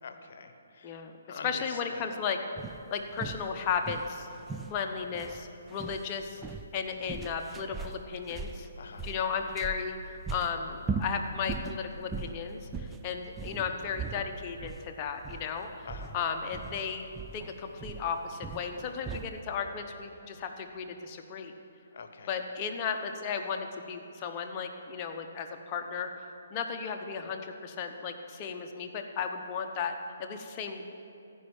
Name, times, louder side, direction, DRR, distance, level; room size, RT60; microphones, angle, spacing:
voice 1, 0.0-2.1 8.8-9.1 15.8-16.1 21.9-22.3, left 5 dB, 55° left, 7 dB, 1.1 m, -46 dB
voice 2, 0.8-2.4 2.9-4.3 4.7-6.4 6.7-8.7 9.0-17.1 17.3-21.5 22.3-26.1 26.5-30.8, left 6 dB, 30° left, 4 dB, 1.0 m, -35 dB
sound 1, 2.6-19.4, right 4 dB, 10° right, 0.4 m, -40 dB
15.0 x 5.5 x 8.7 m, 2.8 s
figure-of-eight pair, 135°, 0 cm